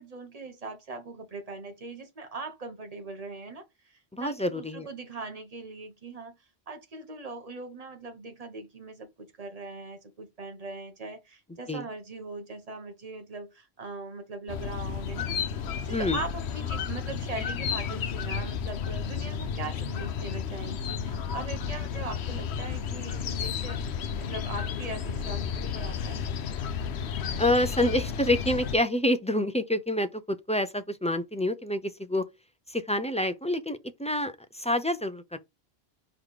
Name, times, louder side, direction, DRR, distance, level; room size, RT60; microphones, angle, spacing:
voice 1, 0.0-6.4 6.7-26.3, right 3 dB, 35° right, 1.4 m, -40 dB
voice 2, 4.1-4.9 11.7-11.8 15.9-16.2 27.4-32.3 32.7-35.4, left 1 dB, 10° left, 0.4 m, -27 dB
sound 1, 14.5-28.8, left 7 dB, 80° left, 1.0 m, -32 dB
5.0 x 3.9 x 4.9 m
omnidirectional pair, 1.1 m